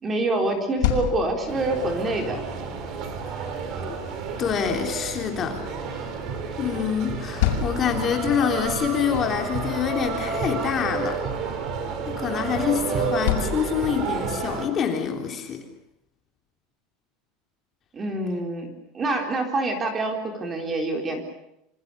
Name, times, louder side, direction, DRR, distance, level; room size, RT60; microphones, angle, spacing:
voice 1, 0.0-2.4 17.9-21.3, right 2 dB, 15° right, 4 dB, 4.0 m, -26 dB
sound 1, 0.5-14.5, left 10 dB, 70° left, 6.4 m, -34 dB
sound 2, 1.5-14.7, right 5 dB, 35° right, 4.5 m, -30 dB
voice 2, 4.4-5.6 6.0-6.1 6.6-11.2 12.1-15.6, left 8 dB, 25° left, 3 dB, 3.6 m, -26 dB
27.5 x 26.5 x 6.9 m, 0.81 s
cardioid pair, 180°, 0 cm